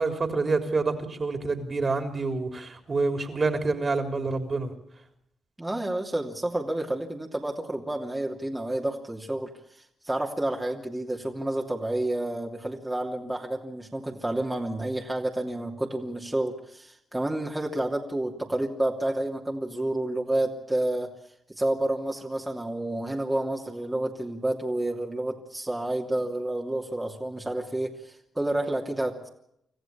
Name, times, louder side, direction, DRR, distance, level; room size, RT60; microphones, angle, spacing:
voice 1, 0.0-4.7, right 3 dB, 40° right, 6 dB, 3.8 m, -27 dB
voice 2, 5.6-9.5 10.1-21.1 21.5-29.3, right 1 dB, 15° right, -1 dB, 2.9 m, -30 dB
26.0 x 14.5 x 8.7 m, 0.76 s
supercardioid pair, 55°, 0 cm